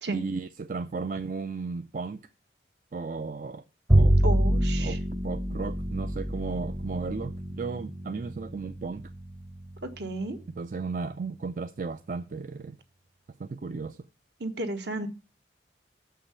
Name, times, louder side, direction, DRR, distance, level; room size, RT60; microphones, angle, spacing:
voice 1, 0.1-2.2 2.9-3.6 4.0-4.2 4.8-9.1 10.6-12.8 13.4-14.1, right 4 dB, 45° right, 0.4 m, -35 dB
Bowed string instrument, 3.9-10.4, right 1 dB, 20° right, 0.8 m, -27 dB
voice 2, 4.2-5.0 9.8-10.4 14.4-15.1, right 2 dB, 65° right, 1.3 m, -33 dB
7.4 x 5.6 x 6.9 m
head